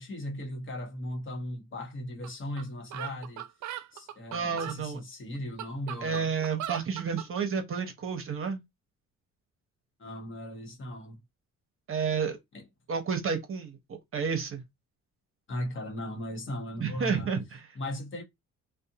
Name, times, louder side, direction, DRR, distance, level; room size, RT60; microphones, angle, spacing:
voice 1, 0.0-3.5 3.9-6.3 10.0-11.2 12.5-12.7 15.5-17.3 17.7-18.2, left 1 dB, 40° left, 1.0 m, -37 dB
sound 1, 2.2-2.3 2.6-2.7 2.9-4.8 5.3-7.3, right 12 dB, 70° right, 0.4 m, -39 dB
voice 2, 4.3-5.0 6.0-8.6 11.9-12.4 12.9-14.6 16.8-17.7, right 6 dB, 45° right, 0.8 m, -31 dB
2.5 x 2.1 x 2.7 m
cardioid pair, 90°, 30 cm